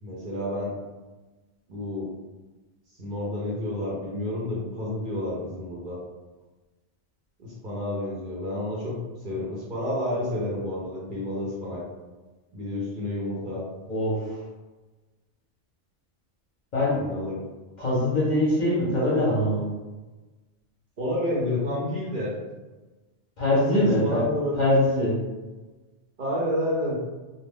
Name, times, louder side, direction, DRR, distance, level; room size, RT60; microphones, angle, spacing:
voice 1, 0.0-0.7 1.7-2.1 3.0-6.0 7.4-11.9 12.5-13.6 17.0-17.4 21.0-22.3 23.8-24.6 26.2-27.0, left 1 dB, 50° right, -6 dB, 0.8 m, -30 dB
voice 2, 13.9-14.4 16.7-17.0 17.8-19.7 23.4-24.2 24.6-25.2, left 1 dB, 45° left, -6 dB, 0.7 m, -23 dB
2.4 x 2.2 x 3.4 m, 1.2 s
omnidirectional pair, 1.2 m